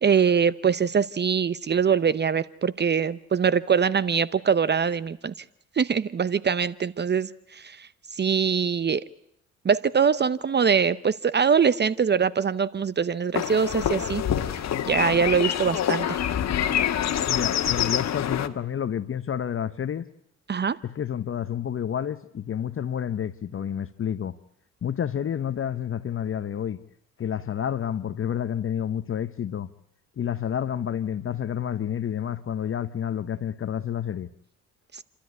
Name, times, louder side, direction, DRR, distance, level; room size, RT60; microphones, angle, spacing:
voice 1, 0.0-5.3 5.8-9.0 9.6-14.2 14.5-14.6 14.9-16.2 20.5-20.8 34.9-35.0, right 6 dB, 35° right, 0.8 m, -23 dB
sound 1, 13.3-18.5, left 9 dB, 60° left, 1.8 m, -26 dB
voice 2, 17.3-20.1 20.8-24.4 24.8-26.8 27.2-29.7 30.2-34.3, left 9 dB, 45° left, 0.9 m, -29 dB
29.5 x 13.0 x 9.5 m
cardioid pair, 90°, 30 cm